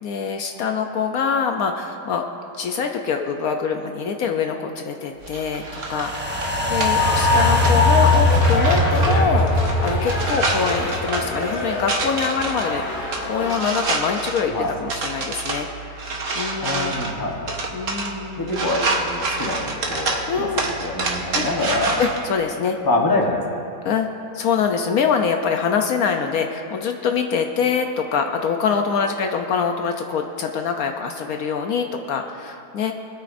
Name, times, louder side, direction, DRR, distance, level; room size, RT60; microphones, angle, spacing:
voice 1, 0.0-2.2 2.6-6.4 6.7-16.1 16.4-17.0 17.7-18.7 20.3-20.6 21.3-21.5 22.0-22.8 23.8-24.1 24.3-32.9, left 6 dB, 70° left, 4 dB, 1.1 m, -24 dB
sound 1, 5.2-22.2, right 3 dB, 55° right, 1.5 m, -28 dB
sound 2, 5.9-12.3 12.6-12.7, left 2 dB, 10° right, 0.6 m, -20 dB
sound 3, 7.0-13.8, left 2 dB, 85° left, 2.4 m, -28 dB
voice 2, 16.6-17.6 18.4-22.0 22.8-23.6, left 2 dB, 15° left, 0 dB, 1.0 m, -25 dB
25.0 x 9.0 x 2.6 m, 2.9 s
omnidirectional pair, 1.7 m